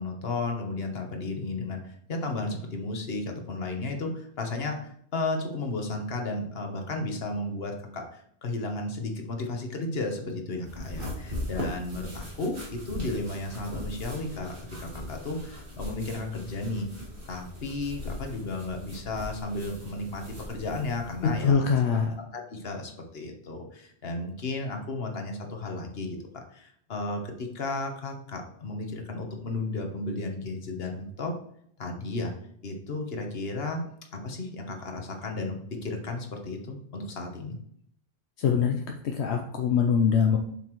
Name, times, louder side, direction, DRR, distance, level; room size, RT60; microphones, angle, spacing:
voice 1, 0.0-16.9 17.3-21.7 22.3-31.4 31.8-32.3 32.6-33.9 34.1-37.6, left 2 dB, 65° left, 3 dB, 1.4 m, -34 dB
sound 1, 10.6-21.5, left 1 dB, 55° right, 2.1 m, -39 dB
voice 2, 21.4-22.2 38.4-40.4, left 6 dB, 80° left, 3 dB, 0.9 m, -23 dB
7.4 x 5.7 x 3.1 m, 0.66 s
omnidirectional pair, 1.1 m